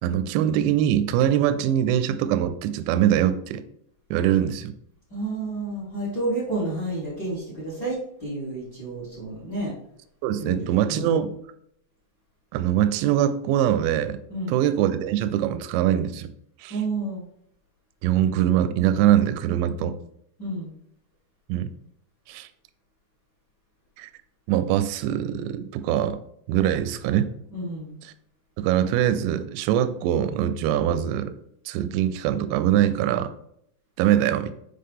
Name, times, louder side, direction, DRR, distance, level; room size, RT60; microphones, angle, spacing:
voice 1, 0.0-3.6 4.1-4.7 10.2-11.3 12.5-14.2 14.5-16.3 16.6-16.8 18.0-20.0 21.5-21.7 22.3-22.5 24.0-24.1 24.5-26.2 26.5-27.3 28.0-28.1 28.6-31.3 31.7-33.3 34.0-34.5, right 11 dB, 85° right, 11 dB, 2.7 m, -23 dB
voice 2, 5.1-9.7 10.4-11.1 14.3-14.5 16.7-17.2 20.4-20.7 27.5-27.9, right 2 dB, 40° left, -7 dB, 1.4 m, -30 dB
7.6 x 3.6 x 3.6 m, 0.71 s
omnidirectional pair, 5.4 m